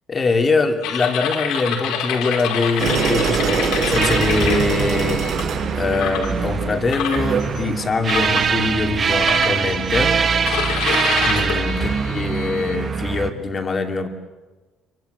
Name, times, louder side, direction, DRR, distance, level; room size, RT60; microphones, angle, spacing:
voice 1, 0.1-5.3 5.7-10.2 11.2-14.1, left 3 dB, 25° left, 2.7 m, -23 dB
sound 1, 0.8-5.4 5.9-6.3 6.9-7.6 8.1-8.5 9.2-9.9 10.5-12.8, left 8 dB, 85° left, 5.1 m, -27 dB
sound 2, 2.8-8.4, right 6 dB, 50° right, 5.4 m, -25 dB
sound 3, 4.0-13.3, right 6 dB, 30° right, 1.9 m, -23 dB
28.5 x 24.5 x 7.9 m
cardioid pair, 165°, 0 cm